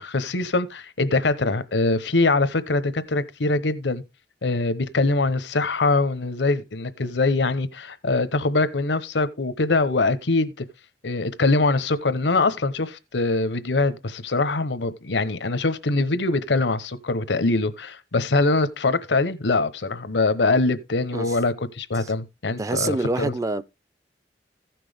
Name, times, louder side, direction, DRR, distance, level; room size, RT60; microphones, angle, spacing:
voice 1, 0.0-4.0 4.4-10.6 11.0-23.3, left 3 dB, 90° left, 0.9 m, -23 dB
voice 2, 22.6-23.6, right 2 dB, 20° right, 0.4 m, -26 dB
15.0 x 6.0 x 3.4 m
head